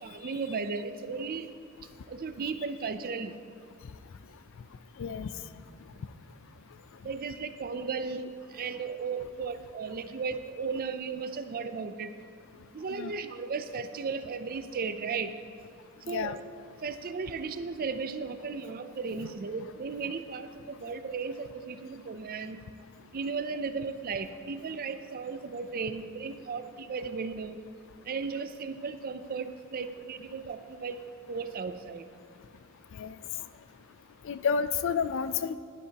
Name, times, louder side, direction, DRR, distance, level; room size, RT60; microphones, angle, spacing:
voice 1, 0.0-1.5 2.1-3.3 7.0-12.1 12.7-15.3 16.1-16.4 16.8-22.6 23.1-27.6 28.0-31.0 31.3-32.0, right 5 dB, 40° right, 10 dB, 0.4 m, -35 dB
voice 2, 5.0-5.3 12.9-13.1 16.1-16.4 32.9-33.1 34.2-35.6, left 6 dB, 60° left, 13 dB, 0.4 m, -30 dB
11.5 x 10.0 x 2.9 m, 2.2 s
head